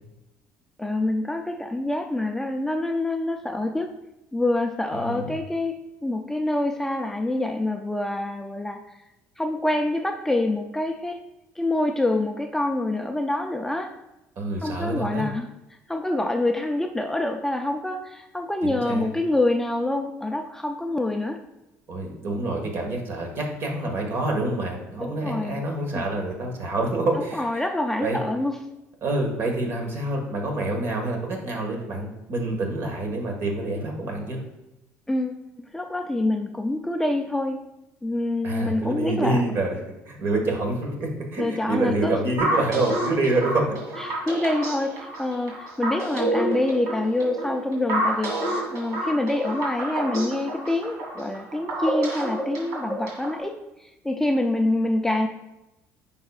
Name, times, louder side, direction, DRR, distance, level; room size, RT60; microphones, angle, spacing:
voice 1, 0.8-3.9 4.3-9.0 9.4-11.2 11.6-13.9 14.6-15.5 15.9-21.4 25.0-25.6 25.9-26.0 27.2-28.6 35.1-37.6 38.0-39.4 41.4-42.2 44.0-55.3, left 2 dB, 5° left, 3 dB, 0.4 m, -26 dB
voice 2, 4.9-5.3 14.4-15.3 18.6-19.1 21.9-27.6 28.0-28.2 29.0-34.4 38.4-39.7 40.1-43.9, right 2 dB, 50° right, 2 dB, 1.5 m, -27 dB
sound 1, 42.4-53.4, right 1 dB, 75° right, 2.4 m, -28 dB
9.1 x 5.5 x 2.4 m, 0.95 s
cardioid pair, 130°, 6 cm